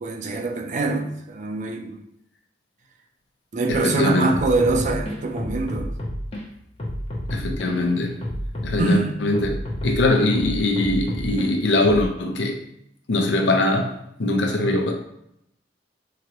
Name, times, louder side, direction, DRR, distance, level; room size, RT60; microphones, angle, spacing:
voice 1, 0.0-2.0 3.5-5.9 8.8-9.2, right 3 dB, 40° right, 3 dB, 0.4 m, -24 dB
voice 2, 3.7-4.3 7.3-8.1 8.6-9.5 9.8-12.6 13.1-14.9, left 2 dB, 70° left, 2 dB, 0.5 m, -22 dB
sound 1, 3.8-3.9 4.3-6.4 6.8-9.0 9.3-11.5 11.8-12.1, equal, 35° left, 0.7 m, -30 dB
3.0 x 2.5 x 2.9 m, 0.78 s
head